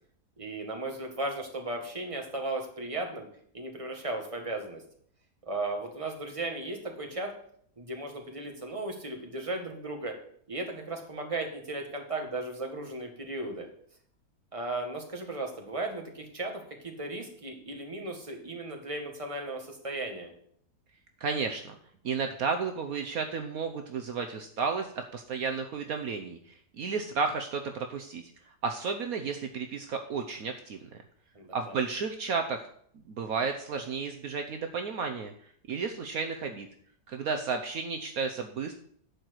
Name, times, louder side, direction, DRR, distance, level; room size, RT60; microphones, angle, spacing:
voice 1, 0.4-3.3 3.5-4.8 5.5-7.3 7.8-10.1 10.5-13.7 14.5-20.3 31.3-31.8, right 2 dB, 20° right, 2 dB, 1.8 m, -36 dB
voice 2, 21.2-21.8 22.0-28.2 28.6-31.0 31.5-32.7 33.1-35.3 35.7-36.7 37.1-38.7, right 5 dB, 65° right, 5 dB, 1.2 m, -32 dB
11.5 x 4.6 x 8.0 m, 0.63 s
omnidirectional pair, 1.7 m